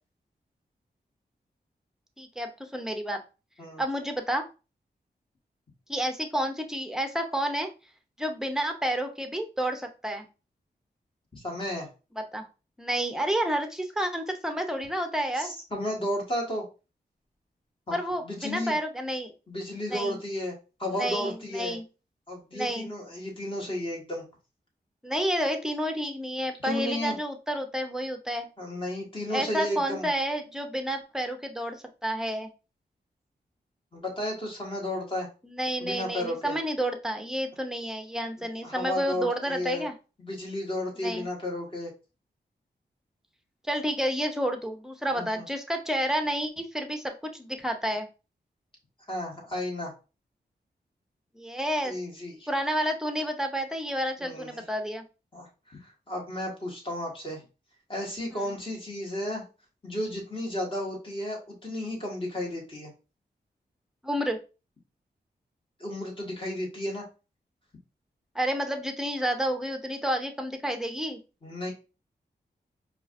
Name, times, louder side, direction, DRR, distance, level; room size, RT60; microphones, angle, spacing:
voice 1, 2.2-3.2 3.8-4.4 5.9-7.7 8.2-10.3 12.2-12.4 12.8-15.5 17.9-19.3 19.9-20.2 21.0-21.8 22.5-22.9 25.0-28.5 29.3-32.5 35.4-39.9 41.0-41.3 43.7-48.1 51.4-52.0 52.5-55.0 58.3-58.5 64.0-64.4 68.3-71.2, equal, 5° right, 5 dB, 0.7 m, -30 dB
voice 2, 11.3-11.9 15.3-16.6 17.9-18.7 19.5-20.5 20.8-21.8 22.3-24.2 26.6-27.2 28.6-30.1 33.9-35.3 35.8-36.6 38.6-39.9 40.2-41.9 45.1-45.4 49.1-49.9 51.8-52.5 54.2-54.6 55.3-57.4 57.9-59.4 59.8-62.9 65.8-67.0 71.4-71.7, left 1 dB, 30° left, -1 dB, 1.6 m, -33 dB
4.7 x 2.4 x 2.5 m, 0.31 s
cardioid pair, 65°, 17 cm